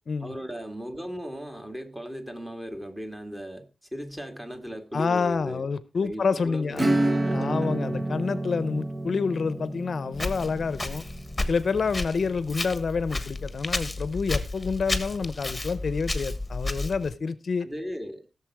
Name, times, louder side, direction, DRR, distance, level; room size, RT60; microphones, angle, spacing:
voice 1, 0.2-5.7 6.0-7.9 17.6-18.3, equal, 10° right, 1.9 m, -37 dB
voice 2, 4.9-6.9 7.3-11.0 11.5-17.7, left 5 dB, 55° left, 0.7 m, -28 dB
Acoustic guitar / Strum, 6.7-13.0, right 1 dB, 25° right, 0.9 m, -30 dB
Walk footsteps, 10.1-17.1, left 2 dB, 15° left, 1.3 m, -32 dB
16.5 x 7.1 x 4.7 m
wide cardioid pair, 140°, 0 cm